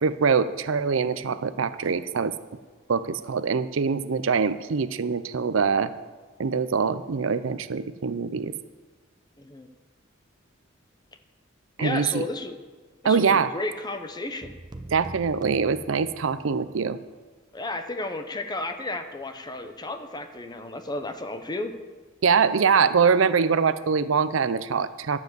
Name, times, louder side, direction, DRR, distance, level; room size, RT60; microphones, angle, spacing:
voice 1, 0.0-2.3 2.9-5.9 6.4-8.5 11.8-12.2 13.0-13.5 14.9-17.0 22.2-25.2, right 5 dB, 75° right, 13 dB, 0.5 m, -23 dB
voice 2, 9.4-9.7 11.8-12.6 13.0-14.5 17.5-21.8, left 2 dB, 20° left, 8 dB, 0.9 m, -33 dB
sound 1, 14.4-16.7, right 1 dB, 20° right, 0.7 m, -43 dB
11.5 x 7.3 x 7.9 m, 1.4 s
head